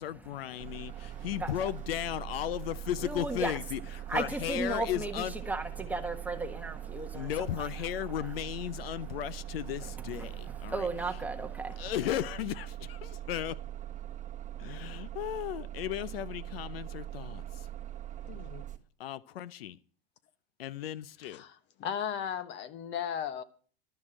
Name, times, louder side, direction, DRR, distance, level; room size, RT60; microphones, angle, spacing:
voice 1, 0.0-5.3 7.1-11.2 11.8-13.6 14.6-17.7 19.0-19.8 20.6-21.4, left 12 dB, 85° left, 0.7 m, -35 dB
voice 2, 0.5-1.5 3.0-3.6 4.1-7.3 7.6-7.7 10.1-11.9, right 2 dB, 5° right, 1.4 m, -36 dB
Bus, 0.6-18.8, right 12 dB, 25° right, 1.3 m, -42 dB
voice 3, 18.3-18.6 21.3-21.5 21.8-23.4, left 8 dB, 40° left, 1.1 m, -35 dB
12.0 x 6.3 x 8.8 m
supercardioid pair, 125°, 29 cm